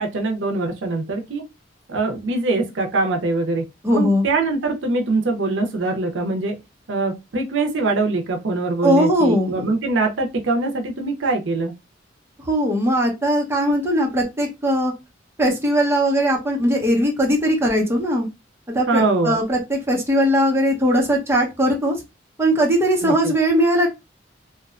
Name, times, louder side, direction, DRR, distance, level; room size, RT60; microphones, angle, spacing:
voice 1, 0.0-1.4 1.9-3.6 3.9-6.6 6.9-11.7 18.9-19.4 23.0-23.3, right 3 dB, 80° right, 0.5 m, -23 dB
voice 2, 3.8-4.2 8.8-9.7 12.4-14.9 15.4-18.3 18.7-22.0 22.4-23.9, equal, 15° right, 0.7 m, -19 dB
2.7 x 2.1 x 2.3 m
head